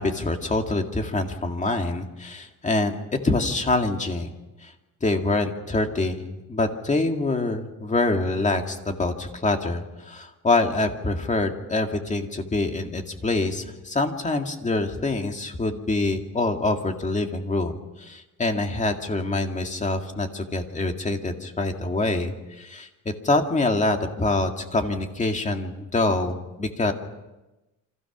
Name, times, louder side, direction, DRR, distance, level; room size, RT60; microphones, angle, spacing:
voice 1, 0.0-2.9 3.2-4.3 4.6-4.7 5.0-22.9 23.2-26.9, left 2 dB, 20° left, 4 dB, 2.1 m, -25 dB
29.5 x 25.5 x 6.1 m, 1.0 s
cardioid pair, 165°, 35 cm